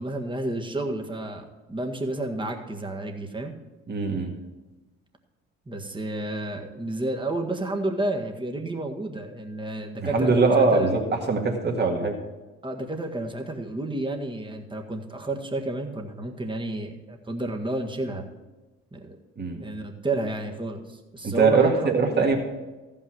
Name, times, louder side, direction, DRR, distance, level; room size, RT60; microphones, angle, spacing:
voice 1, 0.0-3.5 5.7-10.9 12.6-18.3 18.9-19.2 19.5-22.3, right 2 dB, 15° right, 3 dB, 1.7 m, -31 dB
voice 2, 3.9-4.3 10.0-12.1 19.4-19.6 21.2-22.4, right 4 dB, 35° right, 1 dB, 2.0 m, -22 dB
14.5 x 5.6 x 6.2 m, 1.2 s
hypercardioid pair, 55°, 31 cm